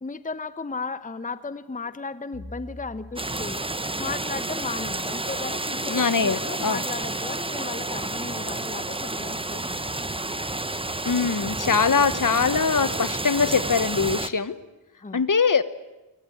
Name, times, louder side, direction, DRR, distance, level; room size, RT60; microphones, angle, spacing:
voice 1, 0.0-3.6 4.0-10.2 15.0-15.2, left 4 dB, 15° left, 14 dB, 1.0 m, -35 dB
sound 1, 2.3-4.8, left 2 dB, 70° left, 7.1 m, -45 dB
sound 2, 3.2-14.3, right 2 dB, 10° right, 1.1 m, -30 dB
voice 2, 5.9-6.8 11.0-14.6 15.1-15.6, left 5 dB, 40° left, 16 dB, 1.3 m, -22 dB
sound 3, 7.8-12.9, right 5 dB, 80° right, 2.8 m, -51 dB
25.0 x 22.5 x 9.3 m, 1.0 s
cardioid pair, 65°, 46 cm